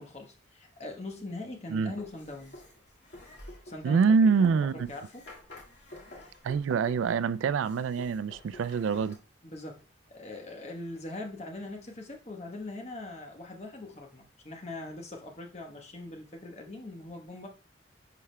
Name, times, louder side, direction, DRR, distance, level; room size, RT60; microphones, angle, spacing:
voice 1, 0.0-2.5 3.6-4.0 4.4-5.2 9.4-9.8 10.1-17.5, left 2 dB, 35° left, 1.0 m, -41 dB
sound 1, 1.9-9.2, left 1 dB, 65° left, 1.9 m, -49 dB
voice 2, 3.8-4.9 6.4-9.2, right 5 dB, 85° right, 0.3 m, -25 dB
10.0 x 4.8 x 2.2 m
head